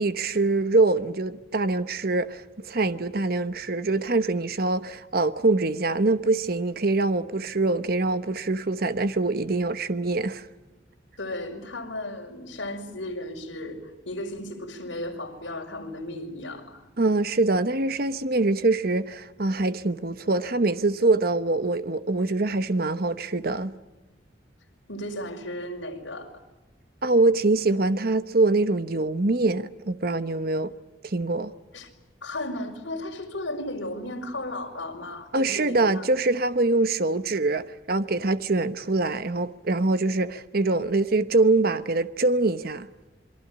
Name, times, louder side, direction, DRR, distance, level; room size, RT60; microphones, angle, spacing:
voice 1, 0.0-10.5 17.0-23.7 27.0-30.7 31.0-31.5 35.3-42.9, right 2 dB, 50° right, 1.0 m, -24 dB
voice 2, 11.2-16.8 24.9-26.4 31.7-31.9 32.2-36.1, left 1 dB, 70° left, 5.5 m, -35 dB
27.5 x 22.5 x 8.7 m
head